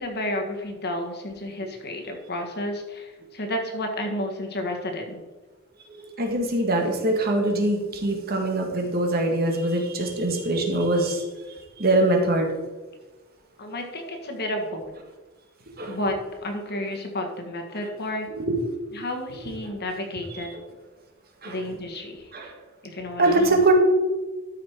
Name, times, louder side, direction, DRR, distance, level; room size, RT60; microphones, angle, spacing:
voice 1, 0.0-5.2 13.6-14.9 15.9-16.2 16.4-18.3 18.9-20.6 21.4-22.3 22.8-23.6, left 1 dB, 50° left, 3 dB, 1.7 m, -31 dB
voice 2, 5.9-11.2 11.8-12.5 15.8-16.0 18.5-18.6 21.4-21.6 22.3-22.5 23.2-23.7, right 2 dB, 45° right, 2 dB, 1.8 m, -23 dB
13.0 x 5.9 x 4.6 m, 1.2 s
head